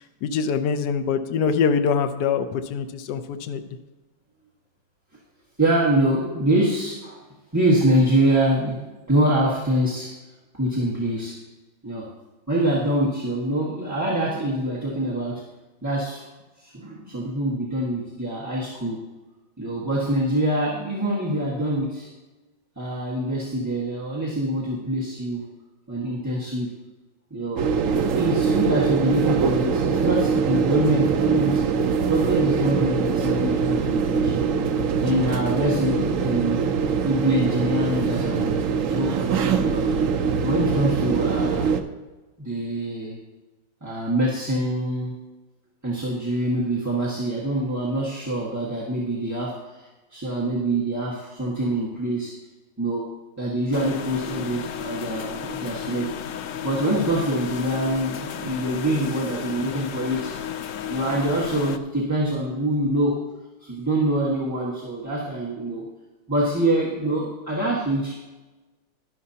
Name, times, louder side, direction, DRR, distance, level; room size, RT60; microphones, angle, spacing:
voice 1, 0.2-3.6, left 6 dB, 70° left, 7 dB, 1.2 m, -24 dB
voice 2, 5.6-7.2 7.5-8.8 9.1-10.1 10.5-11.4 11.8-12.1 12.5-15.4 15.8-16.2 16.6-19.0 19.6-22.1 22.8-25.4 25.9-26.7 27.3-27.7 28.2-34.4 35.0-36.6 37.0-39.9 40.4-41.7 42.4-43.2 43.8-45.1 45.8-52.3 52.8-53.1 53.4-56.1 56.6-60.3 60.9-63.2 63.6-65.9 66.3-68.2, right 1 dB, 10° right, -8 dB, 1.4 m, -25 dB
sound 1, 27.6-41.8, right 6 dB, 65° right, 0.8 m, -23 dB
sound 2, 53.7-61.8, left 9 dB, 90° left, 0.6 m, -33 dB
12.0 x 11.5 x 2.8 m, 1.2 s
omnidirectional pair, 2.0 m